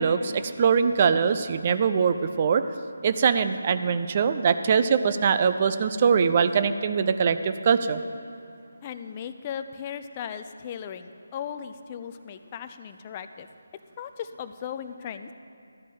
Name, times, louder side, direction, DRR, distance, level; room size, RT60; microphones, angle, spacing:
voice 1, 0.0-2.6 3.0-8.0, right 6 dB, 35° right, 10 dB, 0.5 m, -22 dB
voice 2, 8.8-13.5 14.0-15.3, left 8 dB, 25° left, 10 dB, 0.4 m, -37 dB
13.0 x 5.1 x 8.3 m, 2.5 s
figure-of-eight pair, 155°, 0 cm